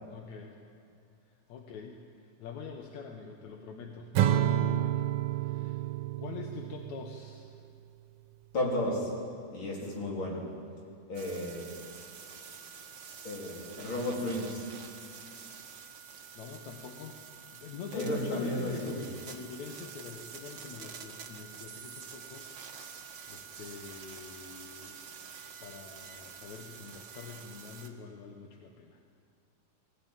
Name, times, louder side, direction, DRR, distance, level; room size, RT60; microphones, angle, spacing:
voice 1, 0.1-0.6 1.3-4.1 4.5-5.8 6.2-7.6 16.3-17.2 17.5-25.0 25.6-29.0, left 5 dB, 75° left, 3 dB, 2.5 m, -45 dB
Acoustic guitar / Strum, 4.2-7.5, right 11 dB, 80° right, 2.2 m, -29 dB
voice 2, 8.5-9.1 9.5-10.5 11.1-11.7 13.2-14.7 17.9-18.9, left 1 dB, 40° left, -2 dB, 4.3 m, -33 dB
sound 1, 11.1-27.9, right 6 dB, 45° right, 1.8 m, -47 dB
21.0 x 16.0 x 9.0 m, 2.5 s
omnidirectional pair, 3.3 m